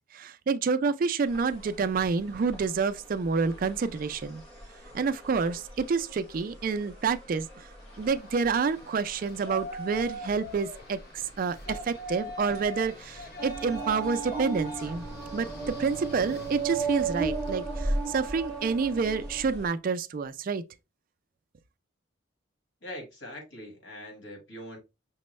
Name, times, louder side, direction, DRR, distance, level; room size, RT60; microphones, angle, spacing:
voice 1, 0.1-4.4 4.9-7.5 8.0-11.0 11.4-15.0 15.3-20.6, right 5 dB, 45° right, 0.3 m, -28 dB
sound 1, 1.3-19.7, equal, 30° left, 1.5 m, -48 dB
Yell, 7.8-18.0, equal, 50° left, 0.9 m, -43 dB
sound 2, 13.4-19.4, right 4 dB, 5° right, 0.7 m, -33 dB
voice 2, 22.8-24.8, left 1 dB, 75° left, 1.8 m, -42 dB
5.9 x 2.1 x 3.1 m
head